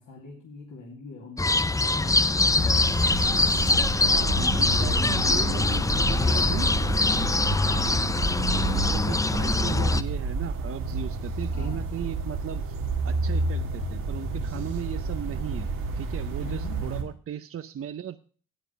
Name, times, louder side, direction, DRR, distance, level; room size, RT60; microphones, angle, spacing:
voice 1, 0.0-3.0 4.0-5.7 6.1-7.4 8.0-8.2 11.5-11.8 14.2-14.7 16.4-17.1, left 3 dB, 65° left, -2 dB, 2.4 m, -43 dB
sound 1, 1.4-10.0, left 3 dB, 10° left, 0.5 m, -23 dB
sound 2, 2.5-17.0, right 3 dB, 80° right, 1.7 m, -31 dB
voice 2, 4.1-6.7 7.6-8.1 8.5-12.8 13.0-15.7 16.0-18.2, right 9 dB, 40° right, 11 dB, 0.6 m, -37 dB
9.4 x 8.2 x 5.6 m, 0.41 s
supercardioid pair, 50°, 34 cm